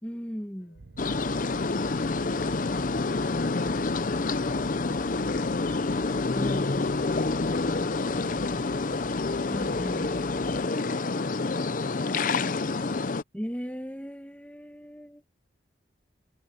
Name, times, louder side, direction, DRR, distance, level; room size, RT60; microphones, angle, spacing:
voice 1, 0.0-0.8 6.4-6.8 9.5-10.1 13.3-15.2, equal, 10° left, 1.9 m, -37 dB
voice 2, 0.6-0.7, left 2 dB, 70° left, 7.0 m, -58 dB
sound 1, 0.7-10.7, right 3 dB, 65° right, 0.7 m, -45 dB
sound 2, 1.0-13.2, left 3 dB, 45° left, 0.6 m, -28 dB
head